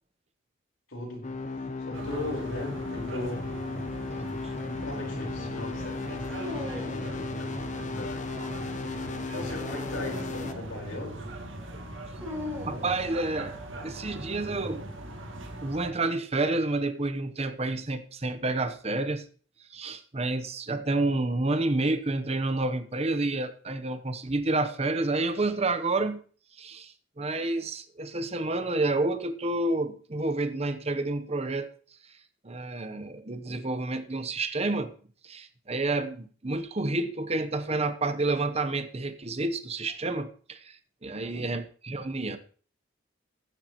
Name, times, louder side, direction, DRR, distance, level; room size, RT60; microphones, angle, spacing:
voice 1, 0.9-1.4 1.8-3.5 4.3-8.3 9.2-11.3 41.0-41.5, left 2 dB, 80° left, 4.6 m, -39 dB
sound 1, 1.2-10.5, left 3 dB, 40° left, 0.7 m, -35 dB
sound 2, 1.9-15.9, right 1 dB, 75° right, 1.9 m, -40 dB
Dog, 6.4-7.3 9.2-10.7 12.2-13.0, left 1 dB, 15° right, 3.9 m, -39 dB
voice 2, 12.7-13.5 13.8-14.8 15.6-19.2 19.7-26.2 26.6-31.7 32.4-34.9 35.2-40.7 41.0-42.4, right 2 dB, 30° right, 0.9 m, -29 dB
15.5 x 9.8 x 3.1 m
head